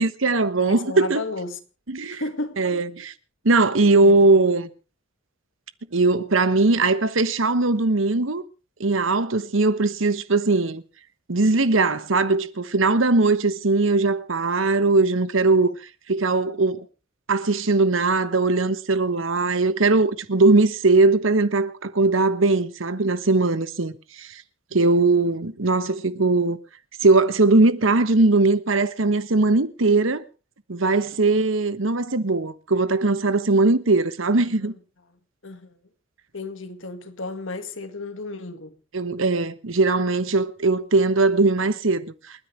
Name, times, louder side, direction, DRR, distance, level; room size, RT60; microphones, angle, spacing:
voice 1, 0.0-1.2 1.9-2.2 2.6-3.1 3.4-4.7 5.9-8.4 8.8-10.8 11.3-15.7 16.1-16.8 17.3-23.9 24.2-24.3 24.7-26.6 27.0-30.2 30.7-34.7 38.9-42.1, right 3 dB, 80° right, 1.2 m, -20 dB
voice 2, 0.6-1.6 2.1-2.6 4.0-4.2 34.4-34.8 35.4-35.8 36.3-38.8, left 2 dB, 70° left, 2.0 m, -33 dB
29.0 x 10.0 x 3.4 m
head